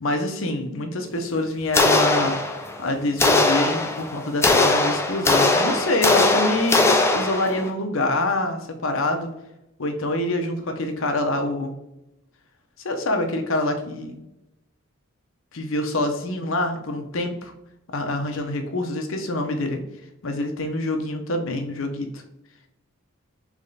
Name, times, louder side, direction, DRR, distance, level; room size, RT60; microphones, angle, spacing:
voice 1, 0.0-2.4 2.8-9.3 9.8-11.7 12.8-14.2 15.5-17.5 17.9-19.8 20.2-22.2, left 2 dB, 65° left, 5 dB, 0.7 m, -26 dB
sound 1, 1.7-2.8 3.2-7.7, left 2 dB, 10° left, 0.3 m, -20 dB
3.5 x 3.3 x 3.9 m, 0.87 s
head